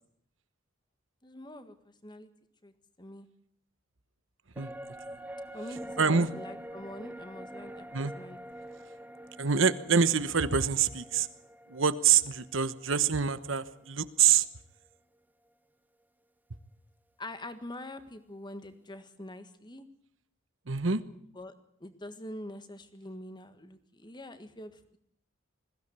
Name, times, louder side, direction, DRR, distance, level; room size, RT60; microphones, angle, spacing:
voice 1, 1.2-1.7 2.0-2.3 2.6-2.7 3.0-3.3 5.5-7.9 8.1-8.4 17.2-19.9 21.1-21.5 21.8-25.0, left 1 dB, 20° left, 10 dB, 1.6 m, -44 dB
sound 1, 4.5-14.1 14.4-14.5, right 1 dB, 10° right, 1.0 m, -46 dB
voice 2, 6.0-6.3 7.9-8.1 9.4-11.3 11.7-14.4 20.7-21.0, right 6 dB, 70° right, 13 dB, 1.1 m, -25 dB
21.5 x 16.0 x 8.2 m, 0.71 s
head